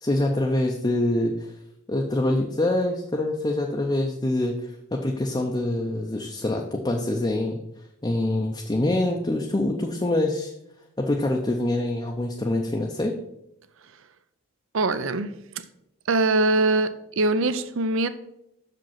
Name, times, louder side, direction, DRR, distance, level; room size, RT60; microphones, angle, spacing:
voice 1, 0.0-1.5 1.9-7.6 8.0-10.5 11.0-13.2, left 1 dB, 20° left, 1 dB, 0.5 m, -25 dB
voice 2, 14.7-15.4 16.1-18.1, right 2 dB, 60° right, 13 dB, 0.5 m, -22 dB
6.5 x 5.1 x 5.7 m, 0.84 s
head